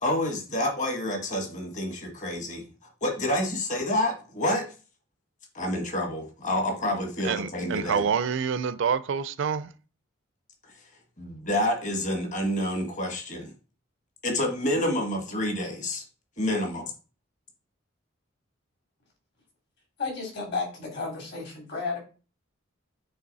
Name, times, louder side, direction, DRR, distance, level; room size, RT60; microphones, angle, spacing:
voice 1, 0.0-4.7 5.5-8.1 11.2-13.5 14.2-16.0 16.4-16.9, left 1 dB, 40° left, 1.4 m, -28 dB
voice 2, 7.2-9.7, right 6 dB, 65° right, 0.4 m, -27 dB
voice 3, 20.0-22.0, left 4 dB, 55° left, 2.8 m, -32 dB
8.7 x 3.3 x 4.0 m
head